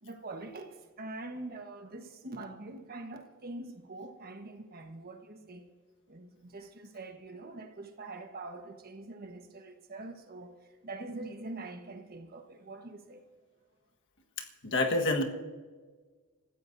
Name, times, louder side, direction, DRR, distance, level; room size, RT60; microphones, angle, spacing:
voice 1, 0.0-5.7 6.1-10.5 10.8-13.2, right 2 dB, 45° right, 1.3 m, -44 dB
voice 2, 14.6-15.2, left 2 dB, 55° left, 1.6 m, -27 dB
26.0 x 14.5 x 2.7 m
head